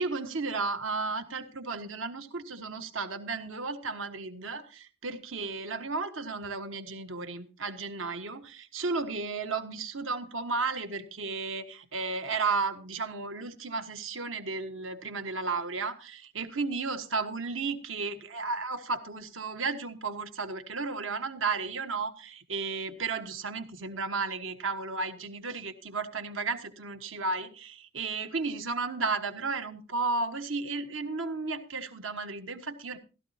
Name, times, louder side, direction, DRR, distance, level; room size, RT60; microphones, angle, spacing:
voice 1, 0.0-33.0, right 4 dB, 75° right, 1.6 m, -33 dB
16.0 x 13.0 x 2.9 m
head